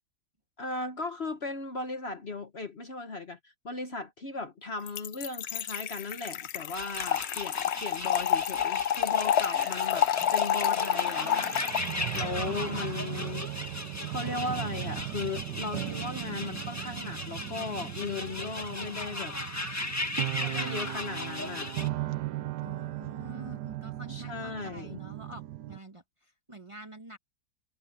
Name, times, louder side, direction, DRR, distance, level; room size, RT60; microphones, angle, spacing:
voice 1, 0.6-19.4 20.4-21.8 24.1-25.0, left 3 dB, 45° left, 1.3 m, -37 dB
Trickle dribble / Fill (with liquid), 4.9-12.2, left 10 dB, 65° left, 0.6 m, -29 dB
sound 1, 6.7-21.9, left 2 dB, 10° left, 1.3 m, -37 dB
sound 2, 9.4-25.8, right 15 dB, 85° right, 1.3 m, -38 dB
voice 2, 12.2-12.7 22.6-27.2, right 1 dB, 20° right, 1.6 m, -47 dB
omnidirectional pair, 1.7 m